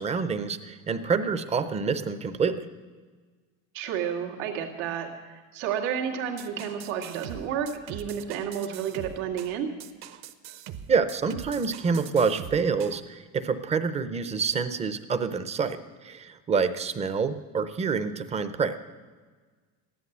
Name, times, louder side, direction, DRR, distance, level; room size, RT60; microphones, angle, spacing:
voice 1, 0.0-2.7 10.9-15.8 16.0-18.8, right 5 dB, 20° right, 11 dB, 0.6 m, -27 dB
voice 2, 3.7-9.7, right 8 dB, 90° right, 1 dB, 2.2 m, -31 dB
sound 1, 6.4-13.0, right 10 dB, 45° right, 0.9 m, -42 dB
15.0 x 11.0 x 8.0 m, 1.4 s
cardioid pair, 175°, 37 cm